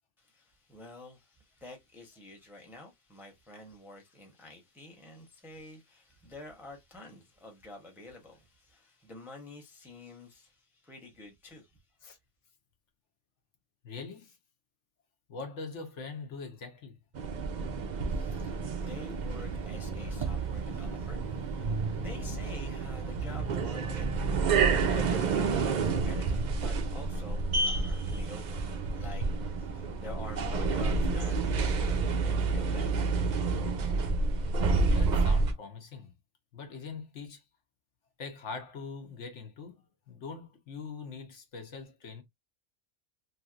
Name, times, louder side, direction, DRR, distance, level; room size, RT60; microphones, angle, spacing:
voice 1, 0.2-11.8 18.1-32.0 32.3-32.9, left 2 dB, ahead, 0.6 m, -49 dB
voice 2, 13.8-14.4 15.3-17.0 21.6-21.8 34.8-36.1 36.5-37.4 38.2-42.2, left 4 dB, 65° left, 1.1 m, -43 dB
sound 1, 17.1-35.5, right 4 dB, 80° right, 0.4 m, -29 dB
3.2 x 2.7 x 2.4 m
omnidirectional pair, 1.4 m